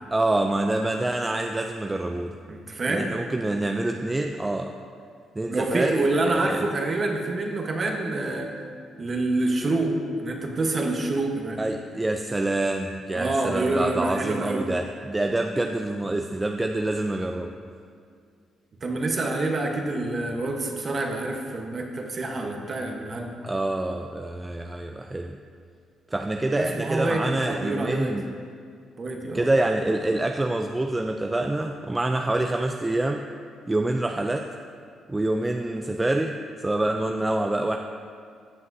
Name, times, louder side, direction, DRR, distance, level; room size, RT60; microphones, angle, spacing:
voice 1, 0.1-2.4 2.9-4.8 5.4-6.7 11.6-17.5 23.4-25.4 26.1-28.3 29.3-33.2 33.7-34.5 35.1-37.8, right 2 dB, 15° right, 4 dB, 0.4 m, -26 dB
voice 2, 2.5-3.1 5.5-8.5 9.0-11.6 13.1-14.7 18.8-23.3 26.5-28.2 29.0-29.4, right 2 dB, 40° right, 2 dB, 1.1 m, -27 dB
16.5 x 5.7 x 2.7 m, 2.2 s
cardioid pair, 90°, 0 cm